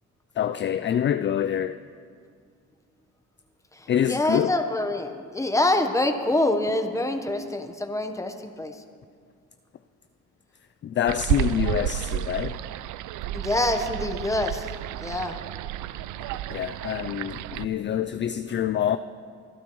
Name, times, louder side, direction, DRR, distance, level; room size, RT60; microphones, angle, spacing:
voice 1, 0.4-1.8 3.9-4.5 10.8-12.6 16.5-19.0, left 9 dB, 40° left, 0.4 m, -26 dB
voice 2, 4.1-8.7 13.3-14.6 15.0-15.4, left 2 dB, 10° left, 1.1 m, -25 dB
sound 1, 11.1-17.7, right 14 dB, 85° right, 0.5 m, -31 dB
24.0 x 11.0 x 3.1 m
cardioid pair, 90°, 30 cm